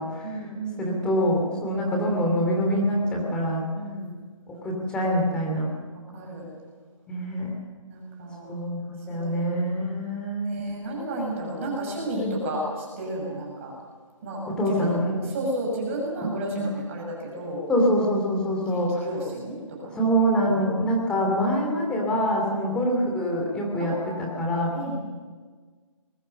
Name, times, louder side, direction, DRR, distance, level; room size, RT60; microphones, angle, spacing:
voice 1, 0.2-0.9 3.7-4.1 5.9-6.5 7.9-8.5 9.1-9.5 10.5-13.7 14.2-14.9 15.2-17.6 18.4-20.0 22.6-22.7 23.8-25.0, right 1 dB, 25° right, -1 dB, 6.7 m, -33 dB
voice 2, 0.8-3.7 4.5-5.7 7.1-7.5 8.4-10.6 12.1-12.3 14.5-15.2 16.2-16.7 17.7-19.0 20.0-24.7, equal, 5° left, 0 dB, 2.9 m, -25 dB
23.0 x 21.5 x 6.8 m, 1.5 s
hypercardioid pair, 170°, 17 cm